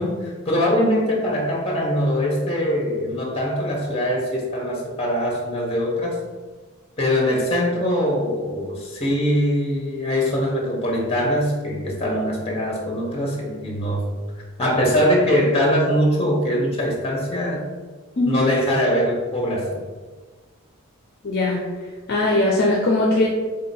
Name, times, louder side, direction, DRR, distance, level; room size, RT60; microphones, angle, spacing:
voice 1, 0.0-6.2 7.0-14.0 14.6-17.6 18.3-19.8, equal, 30° left, -2 dB, 0.9 m, -22 dB
voice 2, 21.2-21.6 22.1-23.3, left 2 dB, 50° left, -3 dB, 0.5 m, -19 dB
3.6 x 2.8 x 4.0 m, 1.4 s
head